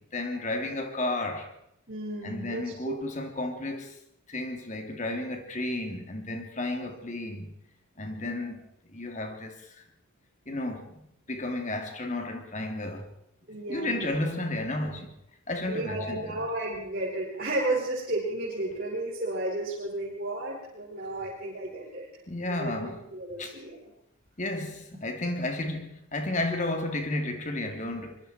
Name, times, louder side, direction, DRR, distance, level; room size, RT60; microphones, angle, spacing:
voice 1, 0.1-1.5 2.2-4.0 4.3-7.5 8.0-8.6 8.9-9.8 10.5-11.0 11.3-13.1 13.7-15.1 15.5-16.4 22.3-23.1 23.4-23.5 24.4-28.2, left 2 dB, 35° left, 3.2 m, -32 dB
voice 2, 1.9-3.0 6.8-6.9 8.2-8.3 13.5-14.1 15.7-22.1 22.4-23.8, right 2 dB, 45° right, 6.0 m, -33 dB
26.0 x 22.0 x 4.6 m
head